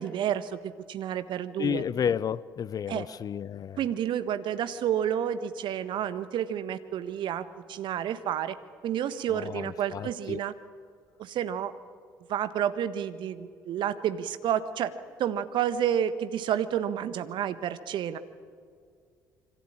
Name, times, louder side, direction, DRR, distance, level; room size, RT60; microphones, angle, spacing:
voice 1, 0.0-1.8 2.9-3.0 3.8-8.5 8.8-10.5 11.2-11.7 12.3-14.9 15.2-18.2, right 9 dB, 55° right, 1.4 m, -30 dB
voice 2, 1.6-3.8 9.3-10.4, left 8 dB, 40° left, 0.7 m, -31 dB
26.5 x 24.5 x 8.7 m
figure-of-eight pair, 50°, 10 cm